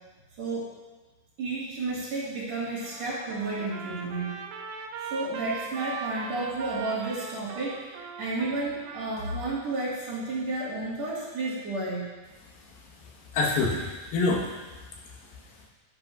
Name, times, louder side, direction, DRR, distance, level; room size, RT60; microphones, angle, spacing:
voice 1, 0.4-0.7 1.4-4.3 5.0-12.1, right 2 dB, 55° right, -6 dB, 2.6 m, -32 dB
Trumpet, 2.8-9.7, right 6 dB, 80° right, 1.8 m, -40 dB
voice 2, 12.6-15.7, left 3 dB, 85° left, -2 dB, 3.1 m, -30 dB
11.0 x 8.7 x 2.4 m, 1.2 s
omnidirectional pair, 4.2 m